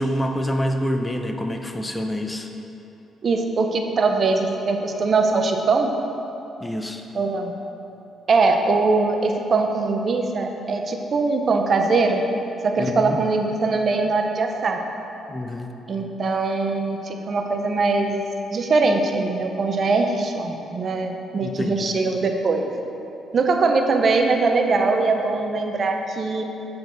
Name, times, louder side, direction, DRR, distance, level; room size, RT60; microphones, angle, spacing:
voice 1, 0.0-2.5 6.6-7.0 12.8-13.2 15.3-15.7 21.4-21.9, equal, 15° left, 4 dB, 0.6 m, -27 dB
voice 2, 3.2-5.9 7.1-7.5 8.3-12.2 12.6-14.8 15.9-18.2 18.5-22.7 23.3-26.4, right 3 dB, 50° right, 4 dB, 0.7 m, -21 dB
7.9 x 6.9 x 3.9 m, 2.9 s
cardioid pair, 90°, 0 cm